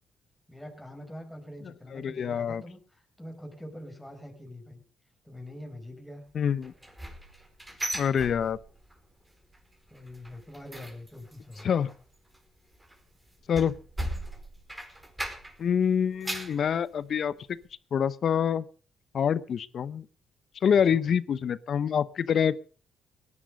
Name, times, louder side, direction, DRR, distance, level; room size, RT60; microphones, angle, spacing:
voice 1, 0.5-4.8 5.2-6.2 9.9-11.7 20.9-21.0, left 1 dB, 5° left, 3 dB, 4.9 m, -44 dB
voice 2, 1.9-2.6 6.3-6.7 7.9-8.6 11.6-11.9 13.5-13.7 15.6-17.6 17.9-18.7 19.1-20.1 20.6-22.5, left 8 dB, 60° left, 18 dB, 0.8 m, -26 dB
sound 1, 6.6-9.0 9.2-9.6 9.9-15.7 16.0-16.6 17.1-17.2 17.6-17.7, right 1 dB, 15° right, 4.6 m, -38 dB
18.0 x 11.0 x 5.1 m, 0.38 s
supercardioid pair, 65°, 0 cm